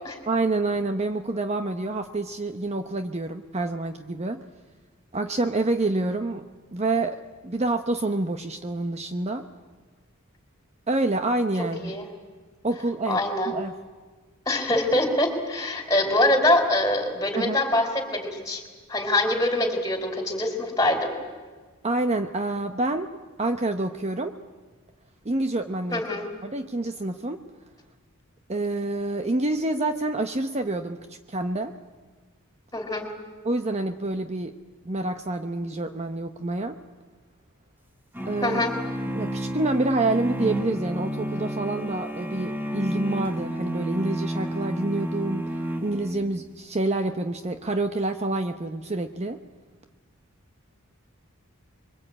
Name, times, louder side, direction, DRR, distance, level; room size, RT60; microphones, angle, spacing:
voice 1, 0.3-4.4 5.1-9.5 10.9-11.9 12.6-13.7 17.4-17.6 21.8-24.4 25.2-26.0 26.4-27.4 28.5-31.8 33.4-34.6 34.8-36.8 38.3-38.6 39.1-45.6 45.8-49.4, right 2 dB, 30° right, 7 dB, 0.9 m, -27 dB
voice 2, 13.1-13.5 14.5-18.6 18.9-21.1 25.9-26.2 32.7-33.1 38.4-38.7, left 1 dB, 15° left, 5 dB, 4.3 m, -24 dB
sound 1, 38.1-46.5, equal, 10° right, 1.7 m, -31 dB
26.0 x 23.0 x 8.8 m, 1.4 s
head